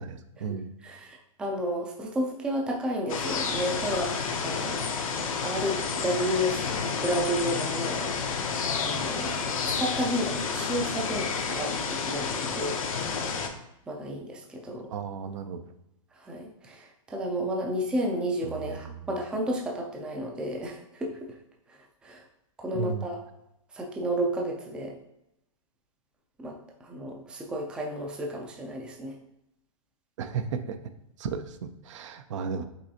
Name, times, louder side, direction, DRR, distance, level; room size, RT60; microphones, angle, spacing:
voice 1, 0.0-0.7 14.9-15.6 18.4-19.1 22.7-23.1 30.2-30.8 31.2-32.6, right 6 dB, 60° right, 9 dB, 0.5 m, -34 dB
voice 2, 0.8-4.8 5.4-8.1 8.8-12.8 13.9-14.9 16.1-21.4 21.7-22.2 22.6-23.2 23.7-25.0 26.4-29.2, equal, 5° right, 1 dB, 0.4 m, -32 dB
sound 1, 3.1-13.5, left 5 dB, 75° left, 0.7 m, -30 dB
5.4 x 3.3 x 2.8 m, 0.84 s
hypercardioid pair, 150°, 18 cm